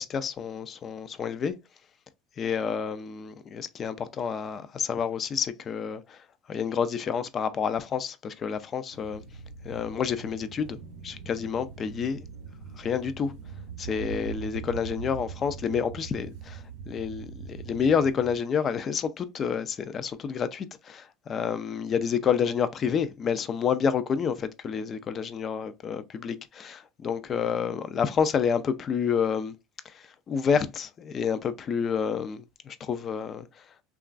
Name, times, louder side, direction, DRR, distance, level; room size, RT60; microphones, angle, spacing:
voice 1, 0.0-1.5 2.4-9.2 9.6-12.2 12.8-13.3 13.8-29.6 29.8-33.7, left 7 dB, 30° left, 0.4 m, -29 dB
sound 1, 8.9-18.4, right 6 dB, 70° right, 0.6 m, -42 dB
3.0 x 2.3 x 2.4 m
supercardioid pair, 125°, 0 cm